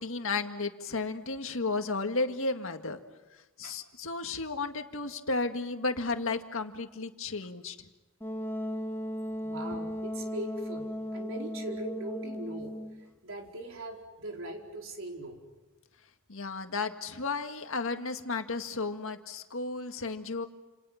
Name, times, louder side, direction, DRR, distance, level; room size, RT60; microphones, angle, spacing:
voice 1, 0.0-3.0 3.6-7.8 16.3-20.5, left 3 dB, 65° left, 6 dB, 1.9 m, -33 dB
Wind instrument woodwind instrument, 8.2-13.0, equal, 10° left, 3.2 m, -36 dB
voice 2, 9.4-12.8 13.2-15.4, right 1 dB, 65° right, 1 dB, 4.7 m, -40 dB
29.0 x 28.0 x 5.9 m, 1.1 s
head